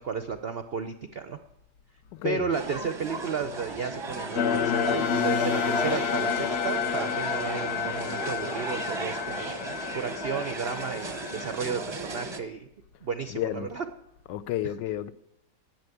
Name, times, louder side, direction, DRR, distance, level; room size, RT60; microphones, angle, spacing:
voice 1, 0.0-1.4 2.2-12.7 13.0-13.9, right 6 dB, 70° right, 0.5 m, -33 dB
voice 2, 2.1-2.5 13.3-13.7 14.3-15.1, left 13 dB, 90° left, 1.3 m, -31 dB
sound 1, 2.5-12.4, right 2 dB, 25° right, 0.5 m, -36 dB
sound 2, 4.4-11.6, left 7 dB, 65° left, 0.6 m, -29 dB
10.5 x 8.0 x 9.2 m
omnidirectional pair, 1.9 m